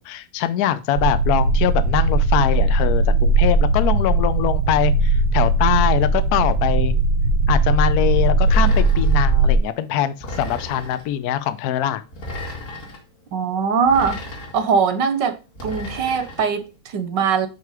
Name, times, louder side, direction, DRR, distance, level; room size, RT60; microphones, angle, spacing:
voice 1, 0.0-6.9 7.5-12.0, left 11 dB, 70° left, 0.9 m, -23 dB
sound 1, 1.0-9.6, right 3 dB, 85° right, 1.5 m, -18 dB
sound 2, 8.4-9.3 10.2-11.1 12.1-13.0 13.9-14.7 15.6-16.5, left 1 dB, 40° left, 2.0 m, -34 dB
voice 2, 13.3-14.2 14.5-17.5, right 6 dB, 70° right, 1.4 m, -21 dB
8.3 x 3.3 x 4.8 m
omnidirectional pair, 2.2 m